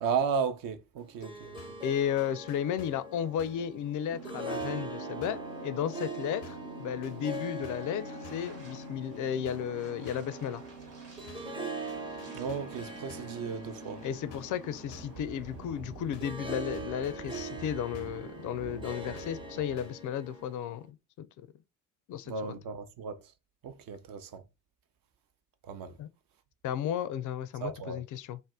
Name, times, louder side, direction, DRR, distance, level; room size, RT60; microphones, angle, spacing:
voice 1, 0.0-1.6 12.3-14.0 22.3-23.2 23.6-24.4 25.6-26.0 27.6-28.0, right 6 dB, 45° right, 0.6 m, -34 dB
Harp, 1.0-20.8, right 2 dB, 10° right, 0.5 m, -42 dB
sound 1, 1.6-1.9 2.2-3.1 3.4-3.7 4.6-4.9 5.2-5.5 6.4-6.7 7.0-8.0 8.2-8.6 9.4-9.8 10.1-10.4 11.3-11.6 11.9-12.8 13.1-13.4 14.3-14.6 14.9-15.2 16.1-16.4 16.7-17.7 17.9-18.3 19.1-19.5 19.8-20.1, left 6 dB, 90° left, 0.6 m, -53 dB
voice 2, 1.8-10.6 14.0-21.3 22.1-22.3 26.0-26.1 26.6-28.4, left 9 dB, 40° left, 0.4 m, -34 dB
sound 2, 4.1-19.8, right 2 dB, 75° right, 1.2 m, -46 dB
2.5 x 2.1 x 3.5 m
figure-of-eight pair, 45°, 47 cm